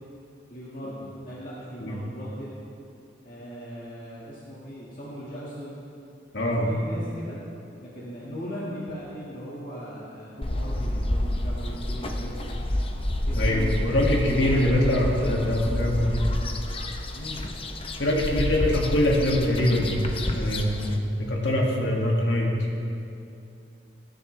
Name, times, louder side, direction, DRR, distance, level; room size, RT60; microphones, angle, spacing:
voice 1, 0.5-2.5 3.2-5.7 6.6-7.4 7.8-12.6 13.3-15.7 17.1-17.5, equal, 45° left, -7 dB, 1.8 m, -38 dB
voice 2, 6.3-6.7 13.4-16.1 18.0-20.0 20.3-20.9 21.3-22.5, left 1 dB, 70° left, -2 dB, 2.2 m, -23 dB
sound 1, 10.4-21.0, left 1 dB, 30° left, 0.7 m, -29 dB
20.5 x 10.0 x 3.3 m, 2.7 s
head